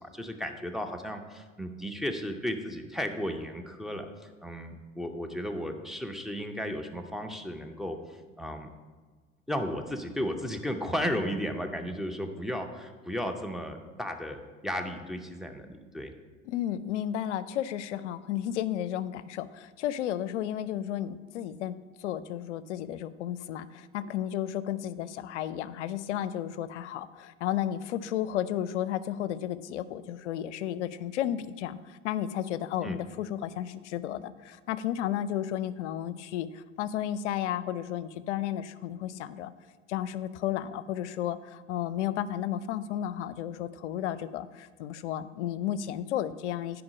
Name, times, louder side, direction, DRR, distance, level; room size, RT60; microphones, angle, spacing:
voice 1, 0.0-4.1 4.4-8.7 9.5-16.1 32.8-33.0, equal, ahead, 3 dB, 0.4 m, -34 dB
voice 2, 16.5-39.5 39.9-46.8, left 11 dB, 60° left, 15 dB, 0.5 m, -33 dB
9.5 x 4.8 x 5.1 m, 1.4 s
figure-of-eight pair, 80°, 40 cm